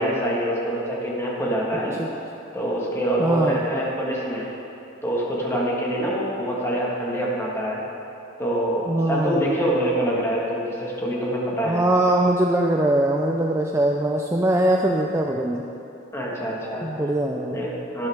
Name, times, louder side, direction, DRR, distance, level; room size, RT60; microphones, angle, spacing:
voice 1, 0.0-1.9 2.5-4.5 5.0-7.8 8.4-11.8 16.1-16.9 17.5-18.1, right 1 dB, 15° left, -5 dB, 1.7 m, -25 dB
voice 2, 3.2-3.6 8.9-9.4 11.6-15.7 16.8-17.6, right 1 dB, 15° right, 1 dB, 0.4 m, -21 dB
11.5 x 10.5 x 3.6 m, 2.8 s
head